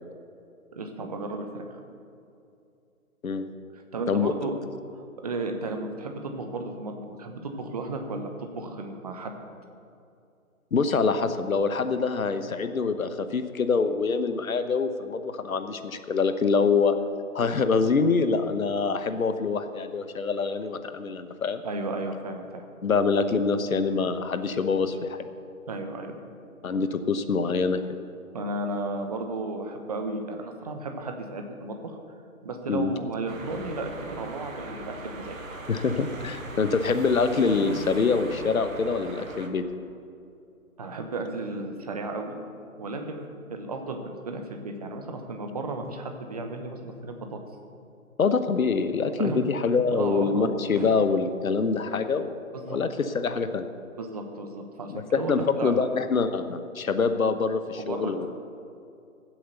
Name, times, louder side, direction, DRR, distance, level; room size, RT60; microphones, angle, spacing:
voice 1, 0.7-1.6 3.7-4.5 4.9-9.3 21.6-22.7 25.7-26.2 28.3-32.0 32.4-35.4 40.8-42.4 42.8-47.4 49.2-49.4 49.9-50.5 50.7-50.9 52.5-52.8 54.0-55.9 57.8-58.3, right 2 dB, 25° right, 4 dB, 1.0 m, -34 dB
voice 2, 10.7-16.9 17.3-21.6 22.8-25.2 26.6-28.0 32.7-32.9 35.7-39.6 48.2-52.3 52.7-53.7 54.9-58.3, left 4 dB, 70° left, 10 dB, 1.1 m, -25 dB
sound 1, 33.3-39.5, right 2 dB, 65° right, 1.7 m, -40 dB
15.0 x 7.8 x 6.7 m, 2.5 s
figure-of-eight pair, 160°, 43 cm